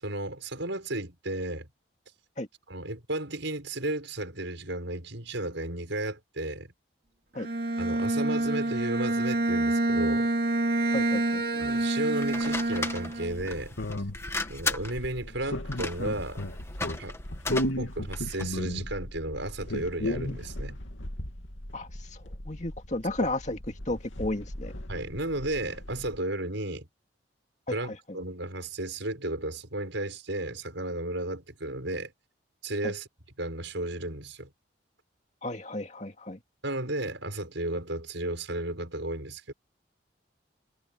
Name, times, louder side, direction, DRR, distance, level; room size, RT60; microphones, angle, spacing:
voice 1, 0.0-1.7 2.7-6.7 7.8-10.3 11.6-13.8 14.5-16.4 17.0-17.2 17.8-20.8 23.2-23.3 24.9-26.9 27.7-32.1 32.6-33.1 33.4-34.5 36.6-39.5, right 2 dB, 70° right, 5.6 m, -33 dB
Bowed string instrument, 7.4-13.4, right 2 dB, 50° right, 2.7 m, -27 dB
voice 2, 10.9-11.6 17.5-17.6 21.7-22.2 22.5-23.6 23.9-24.7 27.7-28.0 32.8-32.9 35.4-36.4, left 1 dB, 35° left, 2.3 m, -33 dB
sound 1, 12.2-18.6, left 3 dB, 15° left, 1.7 m, -36 dB
sound 2, 13.3-26.2, left 1 dB, 80° left, 2.7 m, -36 dB
head